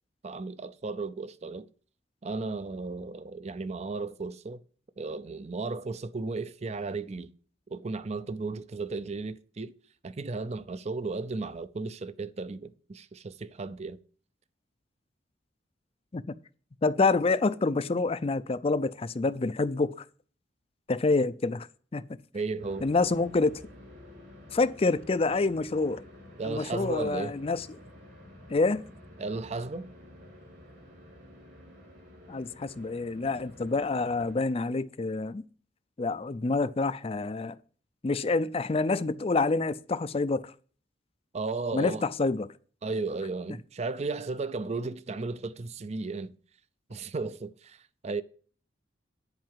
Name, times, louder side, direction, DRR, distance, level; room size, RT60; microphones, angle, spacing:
voice 1, 0.2-1.7 2.2-4.6 5.0-7.3 7.7-9.7 10.0-14.0 22.3-22.9 26.4-27.4 29.2-29.9 41.3-42.0 42.8-46.3 46.9-48.2, right 3 dB, 35° right, 0.5 m, -35 dB
voice 2, 16.8-20.0 20.9-21.7 21.9-22.0 22.8-23.6 24.5-26.0 26.4-27.7 28.5-28.8 32.3-35.4 36.0-37.6 38.0-40.5 41.7-42.5, left 3 dB, 30° left, 0.4 m, -27 dB
sound 1, 22.6-34.3, left 1 dB, 70° right, 5.2 m, -50 dB
10.5 x 4.7 x 7.5 m
head